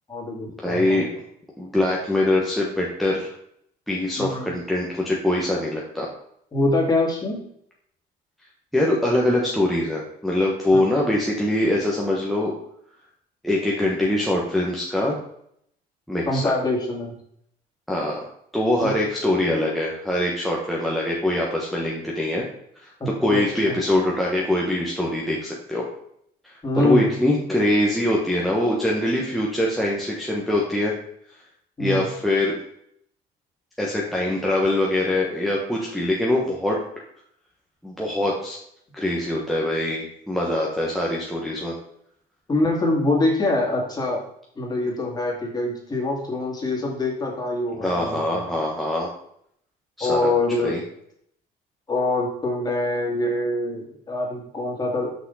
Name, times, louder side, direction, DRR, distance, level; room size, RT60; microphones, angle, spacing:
voice 1, 0.1-1.0 4.2-4.5 6.5-7.4 10.7-10.9 16.3-17.1 18.8-18.9 23.0-23.8 26.6-27.1 31.8-32.1 42.5-44.2 44.6-48.4 50.0-50.8 51.9-55.1, left 2 dB, 25° left, -2 dB, 2.5 m, -24 dB
voice 2, 0.6-1.2 1.6-3.4 3.9-6.1 8.7-12.5 13.4-15.2 16.1-16.5 17.9-18.2 18.5-22.4 22.8-22.9 23.2-25.9 26.4-30.9 31.8-32.5 33.8-36.8 37.8-38.6 38.9-41.7 47.8-49.1 50.0-50.3 50.6-50.8, left 1 dB, ahead, -4 dB, 1.2 m, -23 dB
6.1 x 5.5 x 4.1 m, 0.70 s
cardioid pair, 110°, 17 cm